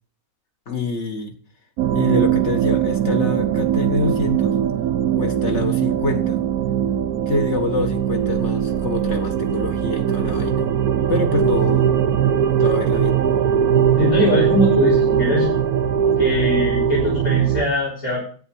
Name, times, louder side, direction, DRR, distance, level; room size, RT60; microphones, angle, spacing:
voice 1, 0.7-1.4 1.9-4.6 5.1-6.4 7.3-10.7 11.1-11.9 12.6-13.2, left 3 dB, 50° left, 5 dB, 2.0 m, -25 dB
sound 1, 1.8-17.6, right 9 dB, 80° right, 1.3 m, -20 dB
voice 2, 14.0-15.5 16.2-18.2, left 2 dB, 75° left, -5 dB, 4.6 m, -21 dB
10.5 x 8.9 x 6.3 m, 0.43 s
omnidirectional pair, 1.6 m